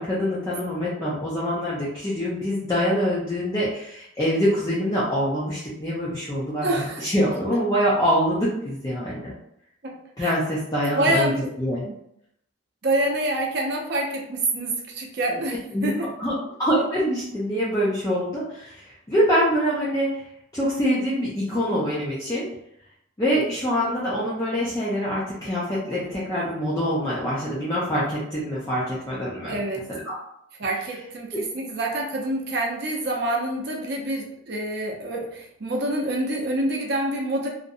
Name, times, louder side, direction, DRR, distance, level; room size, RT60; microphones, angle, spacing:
voice 1, 0.0-9.3 10.2-11.3 11.6-11.8 15.7-15.9 16.2-20.2 20.5-22.5 23.2-29.6 29.9-30.2, equal, 15° left, -8 dB, 0.4 m, -25 dB
voice 2, 6.6-7.1 9.8-9.9 10.2-10.3 10.8-11.5 11.8-12.0 12.8-16.1 29.4-29.8 30.6-37.5, right 1 dB, 55° right, -1 dB, 0.6 m, -26 dB
2.5 x 2.1 x 2.6 m, 0.74 s
head